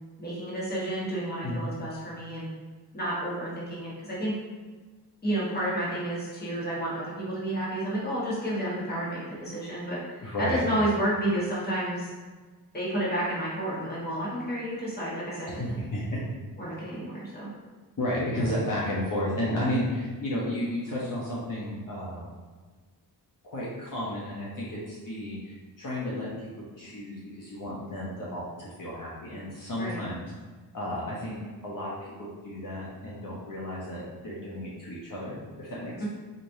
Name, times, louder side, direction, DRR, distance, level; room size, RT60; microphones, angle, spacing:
voice 1, 0.2-2.5 2.9-4.4 5.2-12.1 12.7-15.8 16.6-17.5 29.8-30.0 36.0-36.1, right 1 dB, 20° left, -7 dB, 1.5 m, -31 dB
voice 2, 10.2-10.8 15.5-16.2 18.0-22.3 23.4-26.5 26.8-30.2 30.7-36.1, left 1 dB, 50° left, -6 dB, 1.0 m, -33 dB
4.2 x 3.3 x 2.7 m, 1.4 s
cardioid pair, 80°, 43 cm